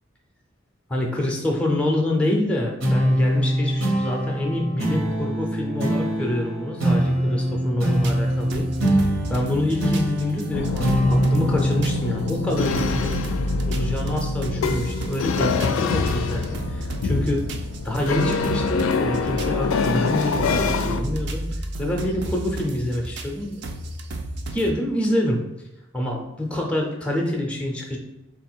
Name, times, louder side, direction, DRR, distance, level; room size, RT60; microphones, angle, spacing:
voice 1, 0.9-8.7 9.3-13.2 13.7-17.5 17.8-23.6 24.5-25.4 25.9-28.0, left 1 dB, 5° left, 1 dB, 0.5 m, -26 dB
Guitar sample, 2.8-13.6, equal, 80° right, 1.0 m, -24 dB
sound 1, 7.9-24.7, right 1 dB, 55° right, 0.4 m, -33 dB
sound 2, 10.5-21.0, left 4 dB, 85° left, 0.4 m, -25 dB
3.7 x 2.4 x 4.4 m, 0.95 s
head